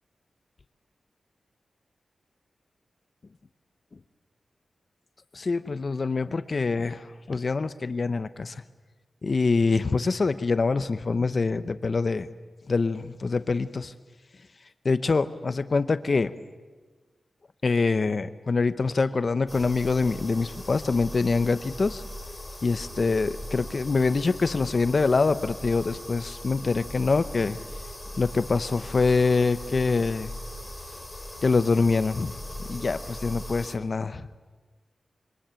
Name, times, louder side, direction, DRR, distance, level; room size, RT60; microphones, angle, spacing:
voice 1, 5.3-8.6 9.2-12.3 12.7-13.9 14.8-16.3 17.6-22.0 22.6-27.6 28.2-30.3 31.4-32.3 32.7-34.3, left 4 dB, 45° left, 12 dB, 0.8 m, -25 dB
sound 1, 19.5-33.8, left 1 dB, 15° left, 3.0 m, -39 dB
26.0 x 25.0 x 9.0 m, 1.3 s
wide cardioid pair, 115°, 0 cm